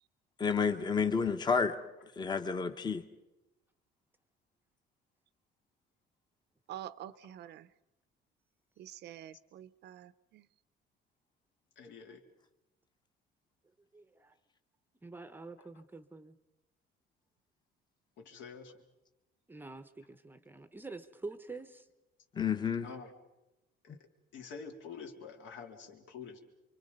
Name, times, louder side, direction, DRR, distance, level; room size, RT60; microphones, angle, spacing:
voice 1, 0.4-1.8 2.2-3.0 22.3-22.9, left 5 dB, 20° left, 8 dB, 1.1 m, -30 dB
voice 2, 6.7-7.7 8.8-10.5, right 11 dB, 60° right, 16 dB, 0.8 m, -47 dB
voice 3, 11.7-12.2 15.6-15.7 18.2-18.7 22.8-23.1 23.8-24.0 24.3-26.4, left 5 dB, 70° left, 3 dB, 3.4 m, -47 dB
voice 4, 13.9-14.3 15.0-16.4 19.5-21.9, right 3 dB, 10° right, 10 dB, 0.8 m, -47 dB
28.5 x 25.0 x 5.4 m, 0.96 s
cardioid pair, 175°, 20 cm